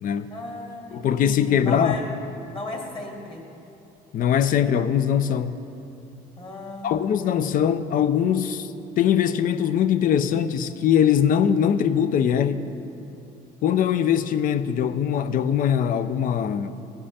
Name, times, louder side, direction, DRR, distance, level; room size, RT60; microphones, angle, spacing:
voice 1, 0.3-2.1 2.5-3.4 6.4-7.7, left 2 dB, 30° left, 1.8 m, -36 dB
voice 2, 0.9-2.0 4.1-5.6 6.8-12.7 13.6-16.8, left 9 dB, 55° left, 0.5 m, -22 dB
15.5 x 5.4 x 4.2 m
cardioid pair, 110°, 17 cm